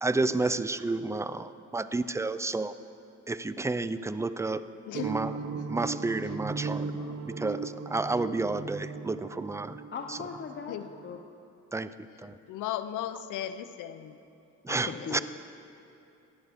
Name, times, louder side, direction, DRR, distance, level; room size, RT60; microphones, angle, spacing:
voice 1, 0.0-2.7 3.3-4.6 5.0-5.3 5.7-6.9 7.3-9.8 10.1-10.2 11.7-11.9 12.2-12.3 14.6-15.2, right 3 dB, 10° right, 14 dB, 0.4 m, -30 dB
voice 2, 4.9-5.2 6.9-7.2 10.7-10.9 12.1-14.2 15.0-15.2, left 11 dB, 85° left, 12 dB, 0.7 m, -37 dB
sound 1, 4.9-11.1, right 4 dB, 55° right, 1.0 m, -37 dB
voice 3, 9.9-10.8 11.0-11.2 14.7-15.2, left 6 dB, 40° left, 4 dB, 0.7 m, -38 dB
15.5 x 11.5 x 3.6 m, 2.8 s
cardioid pair, 90°, 30 cm